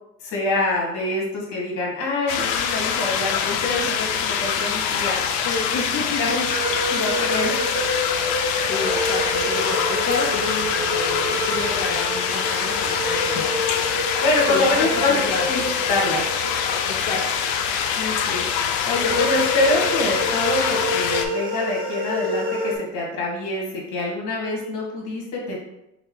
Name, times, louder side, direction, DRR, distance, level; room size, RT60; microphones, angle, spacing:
voice 1, 0.2-5.5 6.1-6.3 6.9-7.5 14.2-15.1 15.5-15.6 15.9-16.2 17.9-25.6, left 2 dB, 55° left, -2 dB, 1.5 m, -25 dB
sound 1, 2.3-21.3, left 7 dB, 80° left, 0.6 m, -24 dB
voice 2, 5.4-6.5 8.7-13.5 14.5-15.4 16.8-17.5, left 3 dB, 30° left, -3 dB, 0.4 m, -29 dB
sound 2, 6.5-18.2 19.0-22.7, left 1 dB, 25° right, 1.0 m, -28 dB
5.4 x 2.1 x 3.7 m, 0.89 s
cardioid pair, 175°, 37 cm